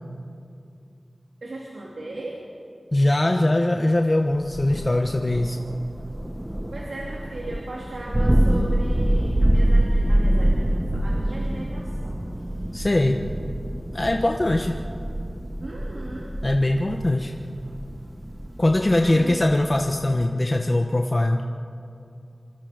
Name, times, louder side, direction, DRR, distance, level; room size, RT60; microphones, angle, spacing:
voice 1, 1.4-2.4 6.7-12.3 15.6-16.3 19.0-19.5, right 2 dB, 85° right, -3 dB, 3.1 m, -37 dB
voice 2, 2.9-5.6 12.7-13.3 13.9-14.8 16.4-17.3 18.6-21.4, left 1 dB, 35° left, 3 dB, 1.2 m, -21 dB
Thunder, 4.5-20.2, right 1 dB, 20° right, 1.5 m, -25 dB
25.5 x 25.5 x 5.2 m, 2.6 s
wide cardioid pair, 50°, 0 cm